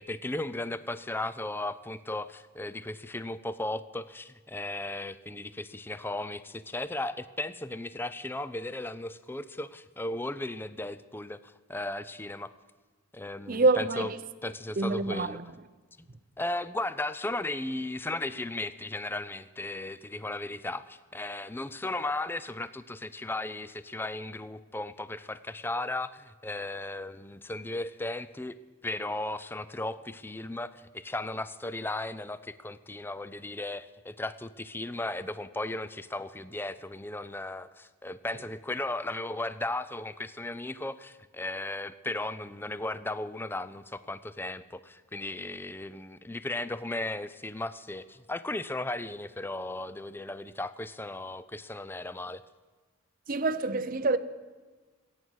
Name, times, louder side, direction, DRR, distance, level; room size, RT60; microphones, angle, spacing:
voice 1, 0.0-12.5 13.1-14.1 14.4-15.4 16.4-28.6 28.8-52.4, left 2 dB, 10° left, 0.4 m, -36 dB
voice 2, 13.5-14.2 14.8-15.4 53.3-54.2, right 3 dB, 40° right, 0.6 m, -26 dB
22.0 x 9.2 x 6.3 m
head